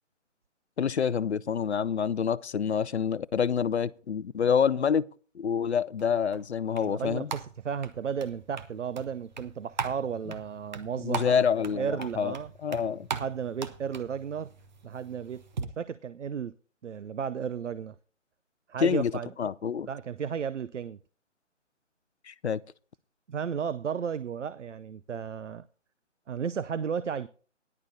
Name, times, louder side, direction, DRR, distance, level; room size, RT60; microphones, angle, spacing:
voice 1, 0.8-5.1 5.4-7.3 11.0-12.3 12.6-13.1 18.8-19.1 19.4-19.9 22.3-22.6, left 7 dB, 60° left, 0.5 m, -27 dB
sound 1, 6.0-15.6, right 5 dB, 35° right, 1.0 m, -40 dB
voice 2, 6.8-11.4 11.7-12.5 13.1-14.5 14.8-16.5 16.8-18.0 18.7-19.3 19.9-21.0 23.3-25.6 26.3-27.3, right 7 dB, 70° right, 0.6 m, -34 dB
18.5 x 11.0 x 2.7 m
figure-of-eight pair, 155°, 38 cm